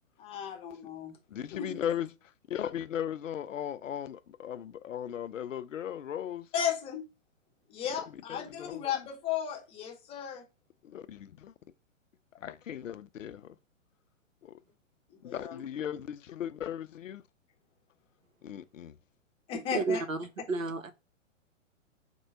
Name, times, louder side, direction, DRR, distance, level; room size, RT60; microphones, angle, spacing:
voice 1, 0.2-1.1 1.5-1.8 6.5-7.0 7.7-10.4 15.2-15.6 19.5-20.0, left 8 dB, 15° left, 0.7 m, -35 dB
voice 2, 1.3-2.1 2.5-6.5 8.3-9.0 10.8-11.5 12.3-13.6 14.4-14.6 15.2-17.2 18.4-19.0, left 10 dB, 75° left, 0.5 m, -37 dB
voice 3, 19.7-20.9, right 4 dB, 85° right, 0.7 m, -32 dB
4.4 x 2.2 x 4.3 m
figure-of-eight pair, 115°, 39 cm